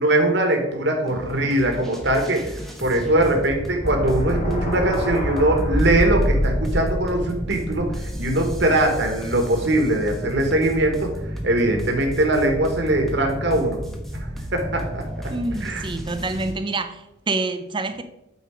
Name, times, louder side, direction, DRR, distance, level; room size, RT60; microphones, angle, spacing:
voice 1, 0.0-11.1 11.4-13.8 14.5-15.3 15.6-15.8, right 1 dB, 60° right, 1.3 m, -21 dB
sound 1, 1.1-16.5, equal, ahead, 0.9 m, -33 dB
sound 2, 3.8-8.8, equal, 35° left, 1.1 m, -26 dB
voice 2, 15.3-18.0, right 3 dB, 25° right, 0.5 m, -27 dB
8.3 x 4.4 x 4.9 m
head